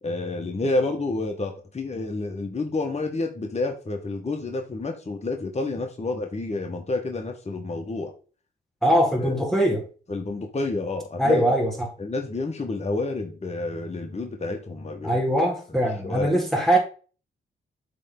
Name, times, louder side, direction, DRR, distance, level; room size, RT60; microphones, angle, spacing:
voice 1, 0.0-8.1 9.2-9.4 10.1-11.5 12.0-15.2 16.0-16.3, left 2 dB, 35° left, 1.4 m, -29 dB
voice 2, 8.8-9.9 11.2-11.9 15.0-16.8, equal, ahead, 1.9 m, -22 dB
7.4 x 3.5 x 3.9 m
cardioid pair, 55°, 20 cm